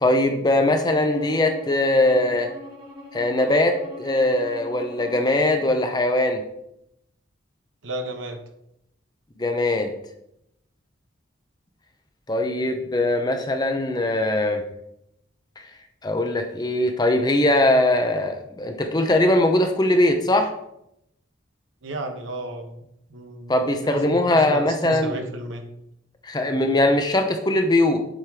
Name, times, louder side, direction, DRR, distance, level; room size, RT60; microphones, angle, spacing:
voice 1, 0.0-2.5 3.1-6.4 9.4-9.9 12.3-14.6 16.0-20.5 23.5-25.2 26.2-28.0, left 1 dB, 20° left, 5 dB, 0.6 m, -21 dB
Bowed string instrument, 0.8-5.8, right 1 dB, 25° right, 1.2 m, -41 dB
voice 2, 7.8-8.4 21.8-25.6, right 1 dB, 75° right, 5 dB, 1.0 m, -34 dB
7.5 x 3.6 x 4.8 m, 0.81 s
head